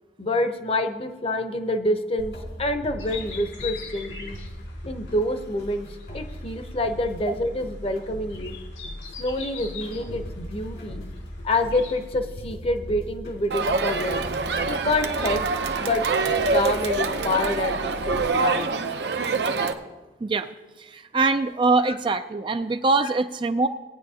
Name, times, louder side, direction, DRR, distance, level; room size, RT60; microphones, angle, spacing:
voice 1, 0.2-2.3 2.6-4.3 4.8-5.9 6.1-8.5 9.2-11.0 11.4-14.2 14.7-15.4 15.8-18.8 21.8-21.9 23.0-23.1, left 1 dB, 35° left, 7 dB, 0.8 m, -27 dB
sound 1, 2.2-18.2, left 1 dB, 75° left, 2.4 m, -39 dB
sound 2, 3.0-12.1, left 6 dB, 90° left, 2.1 m, -43 dB
Crowd, 13.5-19.7, right 4 dB, 75° right, 0.7 m, -25 dB
voice 2, 20.8-23.7, right 3 dB, 30° right, 9 dB, 0.3 m, -23 dB
18.0 x 9.5 x 2.8 m, 1.2 s
head